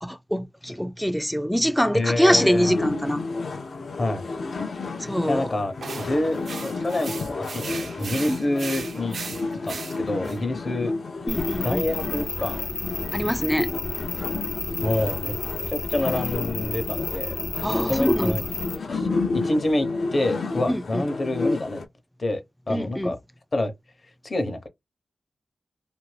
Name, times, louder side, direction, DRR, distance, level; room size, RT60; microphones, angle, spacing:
voice 1, 0.0-3.2 5.0-5.5 8.3-8.4 11.3-11.9 13.1-13.7 17.6-18.4 20.7-21.1 22.7-23.1, equal, 5° left, 0.3 m, -24 dB
voice 2, 1.9-2.7 4.0-4.2 5.3-9.2 9.6-10.9 11.6-12.6 14.8-15.3 15.7-17.3 17.8-18.4 18.9-19.1 19.4-21.8 22.2-22.4 22.7-23.2 23.5-23.7 24.2-24.7, left 1 dB, 40° left, 0.8 m, -27 dB
sound 1, 2.3-21.9, left 3 dB, 65° left, 0.5 m, -31 dB
sound 2, 5.8-10.4, right 5 dB, 75° right, 0.4 m, -37 dB
sound 3, 11.3-18.8, left 3 dB, 85° left, 1.0 m, -32 dB
2.6 x 2.5 x 3.2 m
wide cardioid pair, 110°, 0 cm